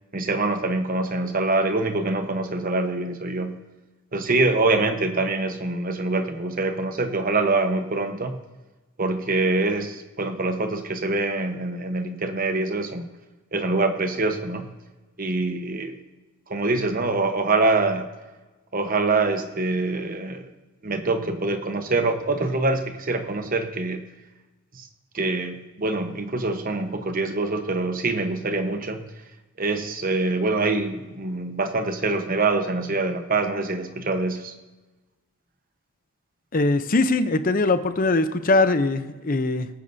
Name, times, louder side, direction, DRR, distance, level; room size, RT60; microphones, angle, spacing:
voice 1, 0.1-3.6 4.1-8.4 9.0-13.1 13.5-14.7 15.2-15.9 16.5-18.1 18.7-20.5 20.8-24.1 24.7-24.9 25.1-29.0 29.6-34.5, right 3 dB, 40° right, 7 dB, 1.1 m, -25 dB
voice 2, 36.5-39.7, left 2 dB, 40° left, 11 dB, 0.6 m, -21 dB
20.0 x 9.0 x 2.7 m, 1.2 s
head